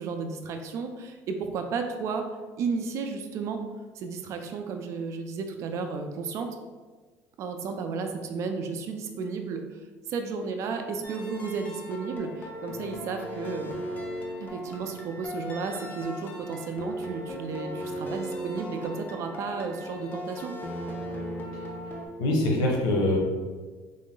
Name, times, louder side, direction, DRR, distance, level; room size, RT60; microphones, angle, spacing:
voice 1, 0.0-2.3 2.6-3.6 4.0-6.5 7.4-9.8 10.1-13.7 14.4-20.5, right 5 dB, 55° right, 5 dB, 0.4 m, -33 dB
sound 1, 11.0-22.1, equal, 30° left, 0.6 m, -37 dB
voice 2, 22.2-23.2, left 1 dB, 85° left, 0 dB, 0.9 m, -23 dB
3.8 x 2.1 x 3.7 m, 1.4 s
cardioid pair, 135°, 6 cm